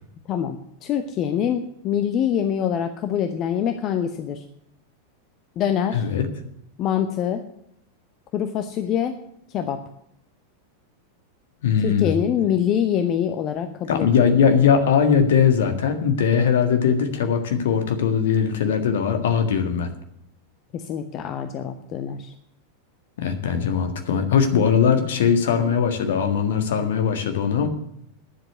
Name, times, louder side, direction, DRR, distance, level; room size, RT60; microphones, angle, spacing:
voice 1, 0.3-4.4 5.6-6.1 6.8-7.4 8.3-9.1 9.5-9.8 11.8-14.4 20.7-22.3, left 9 dB, 35° left, 8 dB, 0.8 m, -25 dB
voice 2, 5.9-6.2 11.6-12.1 13.9-19.9 23.2-27.7, left 7 dB, 60° left, 7 dB, 1.7 m, -20 dB
10.0 x 7.7 x 9.4 m, 0.73 s
figure-of-eight pair, 90°, 0 cm